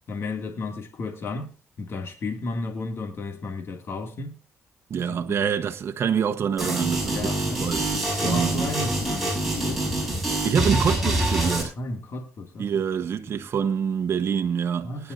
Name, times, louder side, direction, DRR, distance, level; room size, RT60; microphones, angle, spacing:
voice 1, 0.1-4.4 5.1-5.5 7.1-7.7 8.2-9.9 11.8-12.8 14.8-15.1, left 3 dB, 55° left, 2.2 m, -33 dB
voice 2, 4.9-7.9 8.2-8.7 10.4-11.7 12.6-15.1, right 7 dB, 55° right, 1.1 m, -26 dB
sound 1, 6.6-11.6, right 1 dB, 5° right, 6.0 m, -26 dB
20.5 x 10.5 x 2.6 m
cardioid pair, 90°, 5 cm